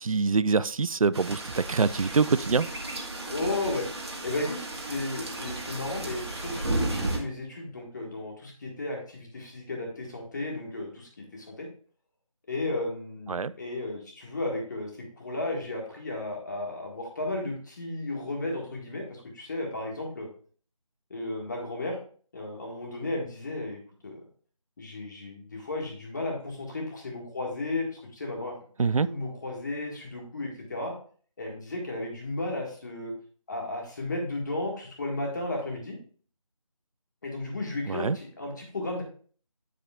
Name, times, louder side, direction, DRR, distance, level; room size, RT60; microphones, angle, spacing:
voice 1, 0.0-2.7 13.3-13.5 28.8-29.1 37.9-38.2, right 4 dB, 75° right, 0.4 m, -25 dB
sound 1, 1.1-7.2, right 2 dB, 50° right, 2.0 m, -34 dB
voice 2, 3.3-3.9 4.2-11.7 12.5-14.9 15.2-20.3 21.1-22.0 22.3-24.2 24.8-28.5 29.0-30.9 31.4-33.1 33.5-36.0 37.2-39.0, left 2 dB, 30° left, 1.7 m, -34 dB
9.1 x 5.0 x 3.5 m
figure-of-eight pair, 165°, 18 cm